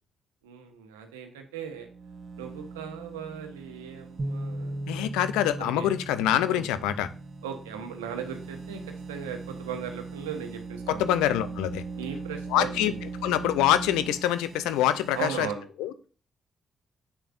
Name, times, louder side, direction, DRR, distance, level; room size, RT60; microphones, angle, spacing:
voice 1, 0.4-1.9 2.4-4.8 5.6-5.9 6.5-6.7 7.4-8.8 9.1-11.0 12.0-13.0 15.1-15.7, right 7 dB, 90° right, 5 dB, 1.0 m, -37 dB
sound 1, 1.6-15.5, right 4 dB, 60° right, 1.3 m, -41 dB
sound 2, 4.2-10.4, right 1 dB, 35° right, 2.9 m, -39 dB
voice 2, 4.9-7.1 10.9-11.8 12.5-12.9 13.2-15.5 15.8-15.9, left 12 dB, 80° left, 13 dB, 0.5 m, -25 dB
8.3 x 6.6 x 2.5 m, 0.38 s
hypercardioid pair, 40°, 0 cm